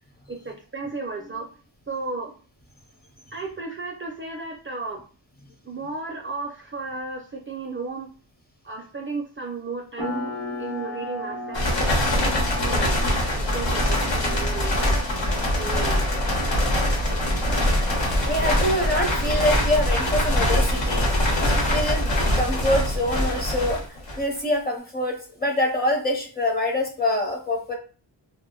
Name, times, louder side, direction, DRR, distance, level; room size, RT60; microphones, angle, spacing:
voice 1, 0.3-1.5 1.9-2.4 3.3-5.0 5.6-8.1 8.6-11.7 12.6-13.1 13.3-15.0 15.5-16.3, right 3 dB, 30° right, 0 dB, 0.4 m, -34 dB
sound 1, 10.0-16.2, left 2 dB, 50° left, 0.9 m, -36 dB
sound 2, 11.5-24.4, left 1 dB, 80° left, 1.0 m, -23 dB
voice 2, 17.5-21.1 21.4-23.8 24.2-27.7, left 1 dB, 20° left, 1 dB, 0.7 m, -25 dB
2.1 x 2.1 x 3.7 m, 0.38 s
wide cardioid pair, 115°, 44 cm